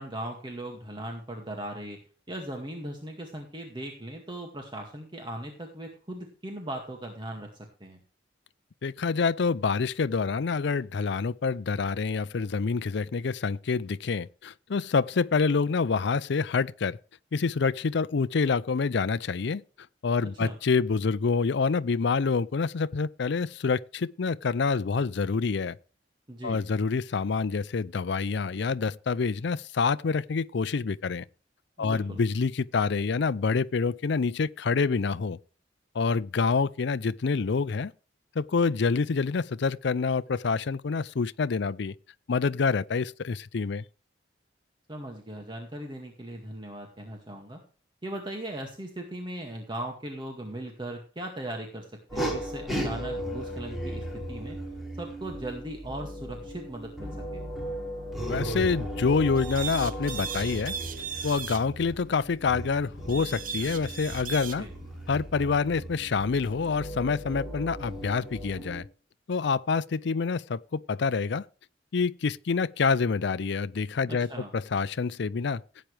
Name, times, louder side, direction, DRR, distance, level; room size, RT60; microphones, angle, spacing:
voice 1, 0.0-2.0 2.3-7.5 7.8-8.0 20.4-20.5 26.3-26.6 31.8-32.2 44.9-47.6 48.0-51.9 52.1-54.6 55.0-57.4 64.6-64.7 74.1-74.5, right 1 dB, 25° right, 2.1 m, -38 dB
voice 2, 8.8-17.0 17.3-19.6 20.0-25.8 26.4-31.2 31.8-35.4 35.9-37.9 38.4-41.9 42.3-43.8 58.3-60.7 61.2-64.7 65.1-68.9 69.3-71.4 71.9-75.6, left 4 dB, 65° left, 0.5 m, -27 dB
sound 1, 52.1-68.8, equal, ahead, 4.6 m, -36 dB
sound 2, 59.4-61.6 63.1-64.6, right 7 dB, 50° right, 1.0 m, -37 dB
16.5 x 9.0 x 3.4 m
head